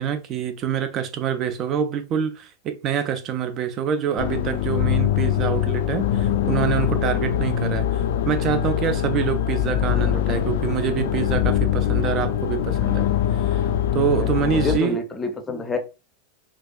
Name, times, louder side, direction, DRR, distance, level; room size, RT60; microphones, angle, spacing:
voice 1, 0.0-13.1 13.5-13.6 13.9-15.0, right 8 dB, 35° right, 0.5 m, -26 dB
sound 1, 4.2-14.8, left 10 dB, 55° left, 0.3 m, -23 dB
voice 2, 14.2-15.8, left 3 dB, 15° left, 0.6 m, -28 dB
4.1 x 2.4 x 2.3 m
figure-of-eight pair, 90°, 0 cm